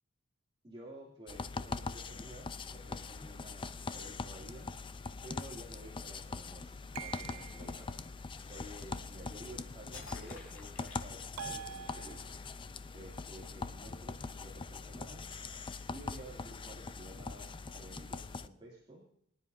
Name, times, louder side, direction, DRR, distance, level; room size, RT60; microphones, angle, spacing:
voice 1, 0.6-4.7 5.2-12.2 12.9-15.3 15.9-19.0, right 1 dB, 25° right, -4 dB, 2.7 m, -52 dB
sound 1, 1.3-18.5, left 4 dB, 25° left, 0.5 m, -42 dB
sound 2, 6.9-7.9 11.4-12.6, right 8 dB, 70° right, 0.4 m, -45 dB
sound 3, 8.4-9.5 9.9-11.8, left 3 dB, 70° left, 3.7 m, -54 dB
24.0 x 10.0 x 2.7 m, 0.72 s
head